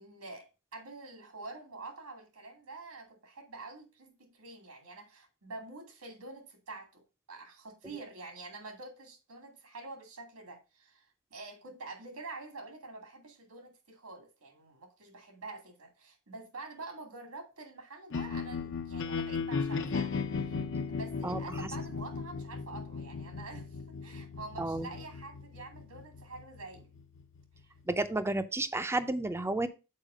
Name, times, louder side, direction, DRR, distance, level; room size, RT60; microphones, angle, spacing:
voice 1, 0.0-7.0 7.3-11.0 11.3-26.9, right 3 dB, 80° right, 2.1 m, -47 dB
sound 1, 18.1-28.2, left 5 dB, 60° left, 0.7 m, -37 dB
voice 2, 21.2-21.7 24.6-24.9 27.9-29.7, right 2 dB, 10° right, 0.5 m, -32 dB
6.6 x 4.6 x 4.8 m
head